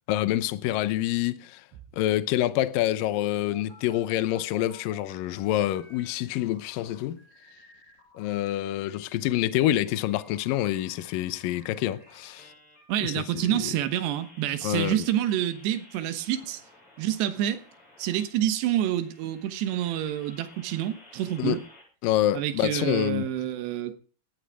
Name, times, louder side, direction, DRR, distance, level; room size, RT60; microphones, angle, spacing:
voice 1, 0.1-1.6 2.0-7.2 8.2-12.5 13.0-13.2 13.5-13.7 14.6-15.0 21.4-21.6 22.0-23.3, left 13 dB, 75° left, 2.2 m, -27 dB
sound 1, 2.7-5.4 5.7-8.3 8.7-21.8, left 1 dB, 45° left, 9.1 m, -54 dB
voice 2, 12.9-16.6 17.0-17.6 18.0-21.6 22.3-23.9, right 12 dB, 85° right, 3.3 m, -28 dB
17.5 x 15.0 x 3.6 m
omnidirectional pair, 4.8 m